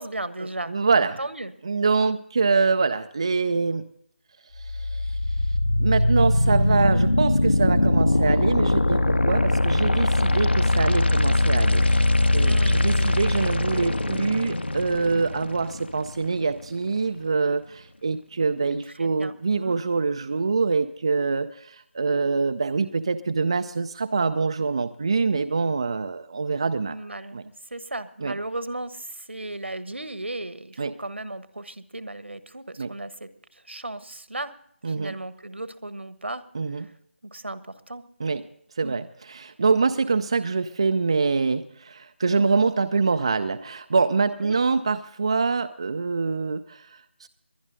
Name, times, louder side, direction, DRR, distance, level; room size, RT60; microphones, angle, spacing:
voice 1, 0.0-0.7 1.2-1.5 12.4-13.1 19.0-19.3 19.6-19.8 26.9-34.5 34.8-36.4 36.8-36.9 37.3-38.0 38.8-39.0 44.4-44.6, right 2 dB, 70° right, 13 dB, 1.2 m, -35 dB
voice 2, 0.7-1.2 1.6-3.9 4.5-5.2 5.8-12.1 12.3-27.0 27.3-27.4 28.2-28.4 30.8-30.9 32.8-32.9 34.8-35.1 36.5-36.9 38.2-38.4 38.8-47.3, right 4 dB, 25° right, 9 dB, 0.4 m, -25 dB
sound 1, 4.6-16.6, left 1 dB, 60° left, 1.4 m, -22 dB
22.5 x 10.5 x 3.8 m, 0.69 s
figure-of-eight pair, 160°, 7 cm